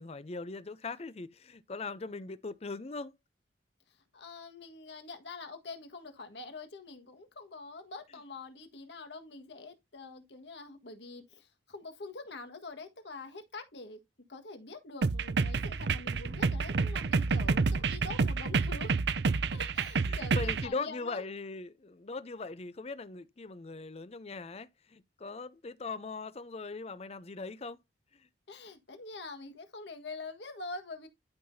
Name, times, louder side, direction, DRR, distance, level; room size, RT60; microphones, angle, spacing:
voice 1, 0.0-3.1 20.1-27.8 28.2-28.3, left 3 dB, 35° left, 0.5 m, -40 dB
voice 2, 3.9-14.0 14.3-19.0 19.5-21.2 28.5-31.1, left 3 dB, 65° left, 1.6 m, -45 dB
sound 1, 15.0-20.7, right 4 dB, 65° right, 0.6 m, -29 dB
11.5 x 5.7 x 2.7 m
head